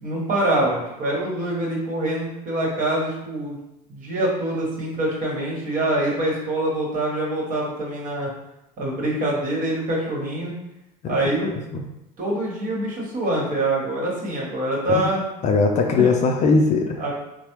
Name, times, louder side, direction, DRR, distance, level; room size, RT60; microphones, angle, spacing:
voice 1, 0.0-3.6 3.9-8.3 8.8-10.5 11.1-11.5 12.2-15.2 16.0-16.1 17.0-17.1, right 1 dB, 45° right, -3 dB, 1.2 m, -25 dB
voice 2, 15.4-17.0, left 4 dB, 35° left, 3 dB, 0.4 m, -20 dB
3.1 x 2.0 x 2.9 m, 0.89 s
hypercardioid pair, 90°, 20 cm